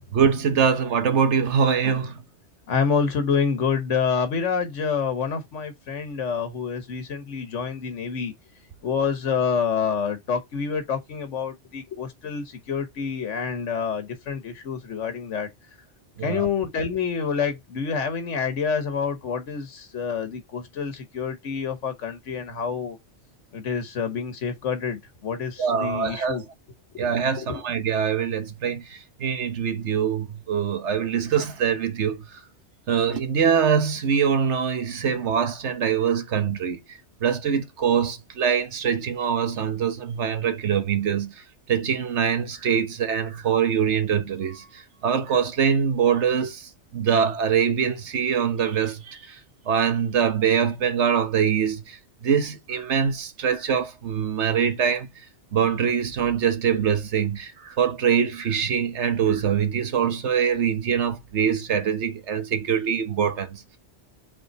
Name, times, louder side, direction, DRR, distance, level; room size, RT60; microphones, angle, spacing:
voice 1, 0.1-2.2 16.2-16.5 25.6-26.4 27.0-32.2 32.9-36.8 37.2-41.3 41.7-49.4 49.7-52.0 52.2-55.1 55.5-63.6, right 7 dB, 70° right, 1.2 m, -23 dB
voice 2, 2.7-8.3 8.8-15.5 16.2-23.0 23.5-26.4 27.4-27.7, left 6 dB, 90° left, 1.4 m, -27 dB
5.4 x 4.2 x 4.1 m
omnidirectional pair, 1.2 m